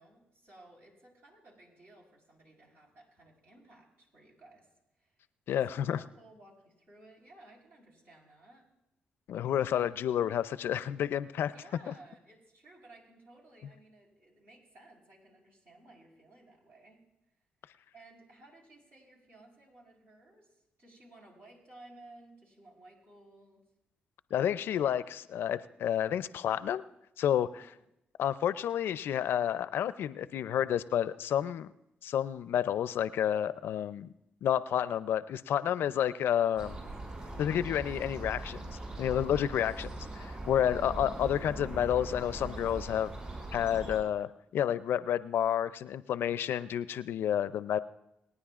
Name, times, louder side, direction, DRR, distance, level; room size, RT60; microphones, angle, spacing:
voice 1, 0.0-4.7 4.9-5.2 5.5-8.7 11.5-17.0 17.9-23.6 27.5-27.9 40.4-41.0, right 2 dB, 70° right, -2 dB, 4.3 m, -57 dB
voice 2, 5.5-6.0 9.3-11.5 11.9-12.0 24.3-26.8 27.2-27.7 28.2-31.7 32.0-34.1 34.4-36.8 37.4-43.1 43.5-47.8, left 10 dB, 70° left, 15 dB, 0.4 m, -30 dB
sound 1, 36.6-44.0, right 2 dB, 35° right, 5.6 m, -41 dB
28.0 x 9.8 x 2.4 m, 0.86 s
supercardioid pair, 60°, 4 cm